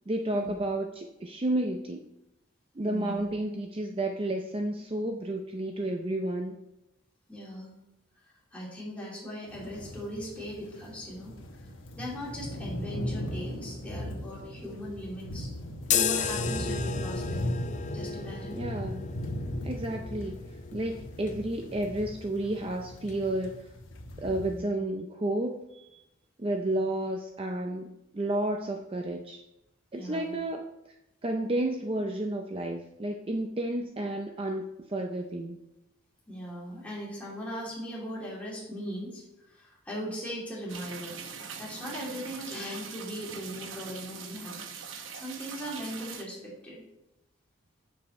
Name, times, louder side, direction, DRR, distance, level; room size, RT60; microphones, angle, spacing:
voice 1, 0.1-2.0 2.8-6.6 18.5-19.1 19.6-20.4 20.7-23.7 24.2-26.0 26.4-29.4 29.9-31.0 31.2-35.6, right 1 dB, 30° right, 3 dB, 0.5 m, -31 dB
voice 2, 2.8-3.2 7.3-7.7 8.5-11.3 11.6-11.7 12.0-15.5 15.9-17.5 17.9-18.6 24.3-24.6 29.9-30.3 36.3-41.2 41.6-44.6 45.1-46.8, equal, 5° left, -6 dB, 2.5 m, -39 dB
sound 1, 9.5-24.6, left 1 dB, 80° left, 1.1 m, -38 dB
sound 2, 15.8-23.6, left 7 dB, 35° left, 0.4 m, -35 dB
sound 3, 40.7-46.2, right 6 dB, 80° right, 0.9 m, -42 dB
7.6 x 6.7 x 4.2 m, 0.92 s
head